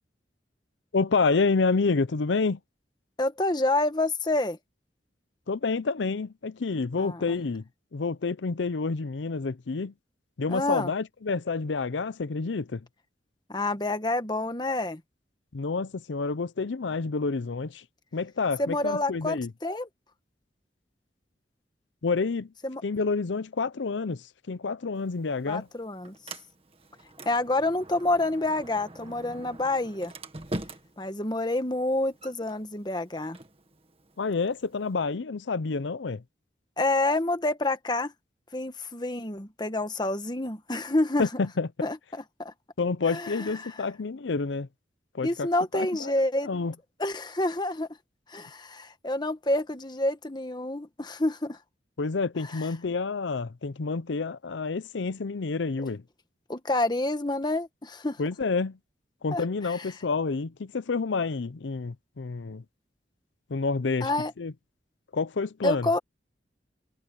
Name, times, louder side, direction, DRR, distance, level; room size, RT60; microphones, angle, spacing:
voice 1, 0.9-2.6 5.5-9.9 10.4-12.8 15.5-17.8 18.1-19.5 22.0-22.5 22.8-25.7 34.2-36.2 41.2-41.7 42.8-44.7 45.1-45.5 45.7-46.1 46.4-46.7 52.0-56.0 58.2-58.8 59.2-62.6 63.5-64.1 64.4-64.5 65.1-65.9, left 4 dB, 85° left, 0.6 m, -28 dB
voice 2, 3.2-4.6 7.0-7.2 10.5-10.9 13.5-15.0 18.6-19.9 22.6-22.8 25.5-26.2 27.2-30.1 31.0-33.4 36.8-38.1 38.5-41.3 41.8-42.0 42.4-42.5 43.1-43.5 45.2-46.5 47.0-47.9 48.3-51.6 52.5-52.6 56.5-58.2 59.3-59.7 64.0-64.3 65.6-66.0, left 2 dB, 25° left, 1.3 m, -28 dB
Sliding door, 24.9-34.9, right 1 dB, 30° right, 1.8 m, -44 dB
head